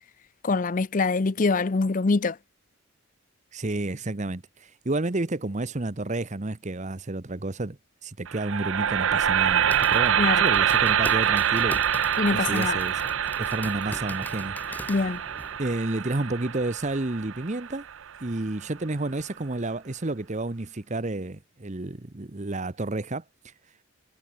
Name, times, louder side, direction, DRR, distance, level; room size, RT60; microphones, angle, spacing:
voice 1, 0.4-2.4 10.2-10.4 12.2-12.8 14.9-15.2, left 3 dB, 40° left, 0.5 m, -24 dB
voice 2, 3.5-13.0 13.4-15.1 15.6-17.9 18.2-23.8, right 2 dB, 35° right, 0.9 m, -31 dB
sound 1, 8.3-18.4, right 9 dB, 65° right, 0.6 m, -25 dB
sound 2, 9.3-15.6, left 1 dB, 10° left, 6.3 m, -41 dB
head